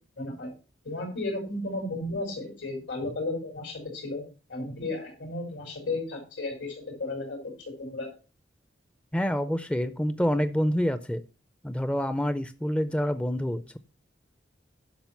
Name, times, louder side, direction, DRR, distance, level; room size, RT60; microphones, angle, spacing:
voice 1, 0.2-0.5 0.8-4.2 4.5-8.1, left 2 dB, 85° left, 0 dB, 4.2 m, -34 dB
voice 2, 9.1-11.2 11.6-13.8, equal, 5° left, 12 dB, 0.5 m, -27 dB
10.5 x 6.2 x 5.8 m, 0.33 s
head